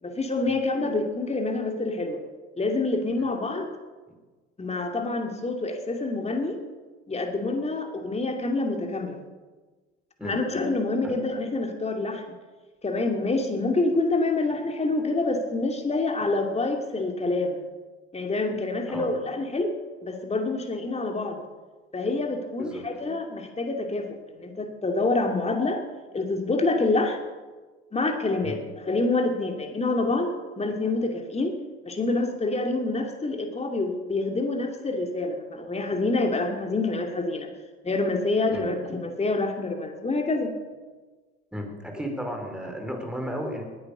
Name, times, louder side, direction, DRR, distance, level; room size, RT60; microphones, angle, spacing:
voice 1, 0.0-2.2 2.6-3.7 4.6-6.6 7.1-9.2 10.2-12.2 12.8-17.6 18.1-19.7 20.0-21.4 21.9-25.9 26.1-27.2 27.9-28.6 28.9-31.5 31.8-37.5 37.8-40.5, left 2 dB, 20° left, 3 dB, 2.6 m, -27 dB
voice 2, 41.5-43.6, equal, 5° right, 2 dB, 5.0 m, -34 dB
19.5 x 10.5 x 6.8 m, 1.3 s
hypercardioid pair, 65°, 33 cm